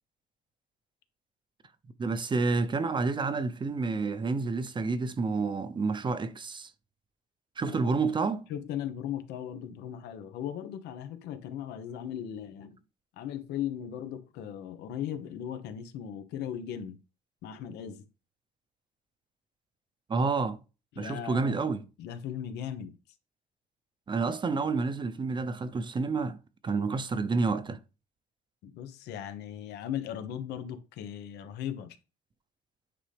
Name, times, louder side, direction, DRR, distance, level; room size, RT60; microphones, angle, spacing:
voice 1, 2.0-6.7 7.6-8.5 20.1-20.6 21.0-21.8 24.1-26.4 26.6-27.8, right 4 dB, 30° right, 0.7 m, -29 dB
voice 2, 8.5-12.8 13.2-17.0 17.4-18.1 20.9-21.5 22.0-23.0 28.6-32.0, left 10 dB, 85° left, 1.1 m, -37 dB
9.2 x 3.8 x 3.4 m
cardioid pair, 110°, 17 cm